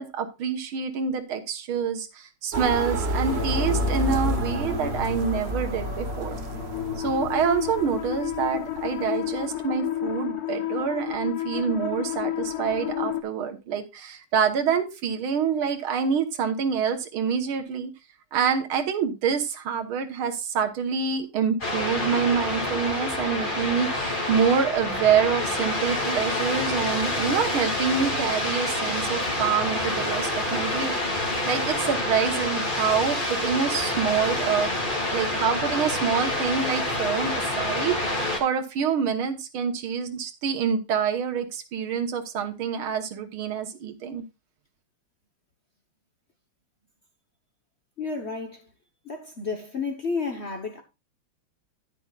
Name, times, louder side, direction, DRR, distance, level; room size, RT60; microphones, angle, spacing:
voice 1, 0.0-6.4 7.0-17.9 18.3-38.0 38.4-44.2, right 7 dB, 75° right, 2.0 m, -26 dB
sound 1, 2.5-9.0, right 1 dB, 45° right, 0.8 m, -30 dB
sound 2, 3.3-13.2, left 10 dB, 55° left, 1.2 m, -31 dB
sound 3, 21.6-38.4, left 1 dB, 25° left, 2.4 m, -27 dB
voice 2, 48.0-48.7 49.0-50.8, left 4 dB, 40° left, 1.1 m, -31 dB
10.5 x 10.5 x 2.4 m
omnidirectional pair, 2.4 m